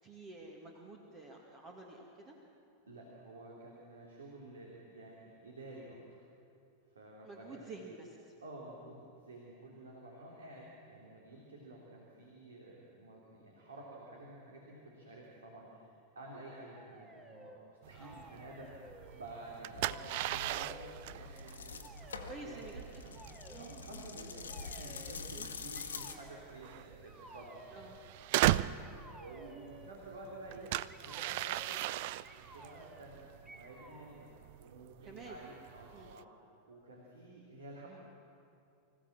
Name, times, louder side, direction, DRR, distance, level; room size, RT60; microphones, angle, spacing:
voice 1, 0.0-2.4 7.2-8.3 17.9-18.6 22.2-23.0 23.4-24.0 24.8-24.9 25.3-25.5 27.7-28.0 35.0-35.4 35.9-36.1, right 3 dB, 30° right, 0 dB, 2.2 m, -50 dB
voice 2, 2.9-6.0 6.9-7.7 8.4-17.6 17.8-21.9 22.4-23.2 23.6-27.8 28.2-30.7 31.0-31.9 32.3-34.3 34.6-36.3 36.7-38.0, right 1 dB, 70° right, -2 dB, 3.1 m, -51 dB
sound 1, 16.7-17.6 18.0-19.5 19.8-21.1 21.8-22.3 23.1-23.8 24.5-25.2 25.7-26.5 27.0-28.0 28.8-30.0 30.9-31.4 32.2-33.1 33.5-34.1, right 1 dB, 15° right, 2.0 m, -55 dB
sound 2, 17.8-36.2, right 15 dB, 50° right, 0.4 m, -39 dB
sound 3, 19.7-26.2, left 5 dB, 70° left, 1.5 m, -46 dB
25.5 x 15.5 x 7.5 m, 2.6 s
figure-of-eight pair, 90°, 0 cm